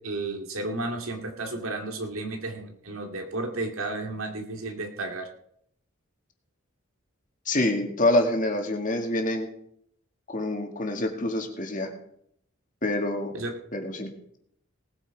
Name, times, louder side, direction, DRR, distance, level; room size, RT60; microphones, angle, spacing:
voice 1, 0.0-5.3 13.3-13.6, right 2 dB, 85° right, 4 dB, 2.3 m, -33 dB
voice 2, 7.5-9.5 10.3-11.9 12.8-13.3 13.7-14.1, left 1 dB, 40° left, 4 dB, 2.1 m, -26 dB
19.0 x 8.8 x 4.8 m, 0.72 s
head